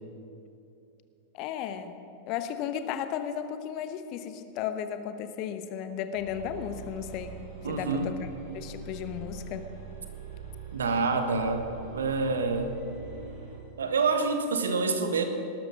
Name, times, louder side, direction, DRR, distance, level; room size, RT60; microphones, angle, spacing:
voice 1, 1.3-1.9 2.3-7.4 7.6-8.1 8.5-9.7, left 9 dB, 40° left, 9 dB, 1.0 m, -34 dB
sound 1, 6.1-13.6, right 6 dB, 50° right, 4.9 m, -44 dB
voice 2, 7.6-8.1 10.7-11.6 11.9-12.7 13.8-15.2, right 4 dB, 70° right, 7 dB, 1.4 m, -27 dB
19.0 x 12.5 x 5.3 m, 2.6 s
figure-of-eight pair, 90°, 0 cm